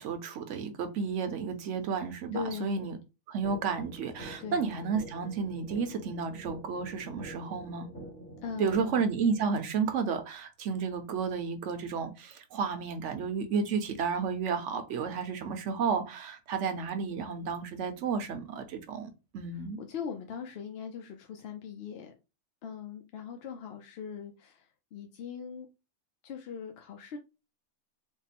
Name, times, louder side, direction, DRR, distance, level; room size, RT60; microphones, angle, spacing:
voice 1, 0.0-2.9 3.3-7.9 8.6-19.8, right 5 dB, 70° right, 1.0 m, -32 dB
voice 2, 2.3-2.9 4.4-4.7 8.4-9.0 19.8-22.1 22.6-25.7 26.2-27.2, left 7 dB, 60° left, 0.7 m, -40 dB
sound 1, 3.4-9.4, right 1 dB, 40° left, 1.5 m, -46 dB
3.6 x 2.0 x 4.0 m
omnidirectional pair, 1.4 m